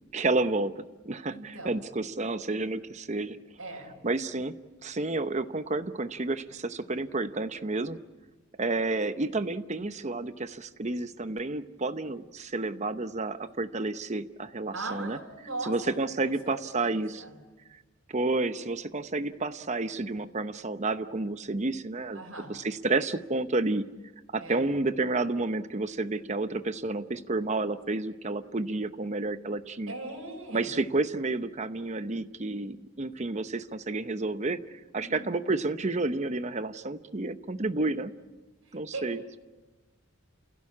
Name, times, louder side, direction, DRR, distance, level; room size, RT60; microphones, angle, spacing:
voice 1, 0.1-0.7 1.0-3.4 4.0-4.5 4.8-8.0 8.6-15.2 15.6-17.2 18.1-22.2 22.5-23.8 24.3-29.9 30.5-34.6 34.9-38.1 38.7-39.4, right 2 dB, 35° right, 11 dB, 0.8 m, -30 dB
voice 2, 1.3-1.8 3.6-3.9 14.7-15.7 16.2-17.4 22.1-22.5 24.4-24.6 29.9-30.7 35.0-35.3 38.6-39.0, right 2 dB, 65° right, -3 dB, 6.6 m, -39 dB
29.0 x 16.5 x 8.5 m, 1.2 s
head